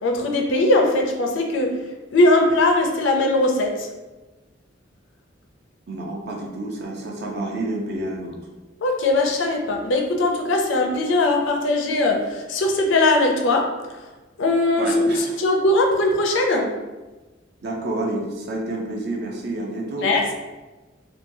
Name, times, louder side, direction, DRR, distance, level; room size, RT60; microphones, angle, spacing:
voice 1, 0.0-1.7 2.1-3.9 8.8-13.7 14.4-16.7 20.0-20.3, left 2 dB, 70° left, 2 dB, 0.4 m, -20 dB
voice 2, 5.9-8.4 14.8-15.4 17.6-20.1, right 2 dB, 60° right, -1 dB, 0.6 m, -29 dB
2.8 x 2.2 x 2.6 m, 1.2 s
head